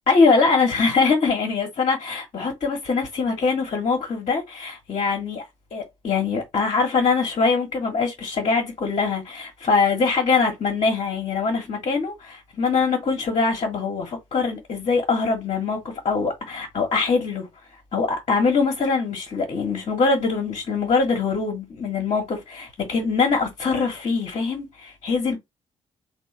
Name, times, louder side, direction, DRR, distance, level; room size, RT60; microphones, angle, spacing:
voice 1, 0.1-5.4 5.7-17.5 17.9-25.4, left 4 dB, 45° left, 1.5 m, -23 dB
3.7 x 2.5 x 4.7 m
figure-of-eight pair, 40°, 15 cm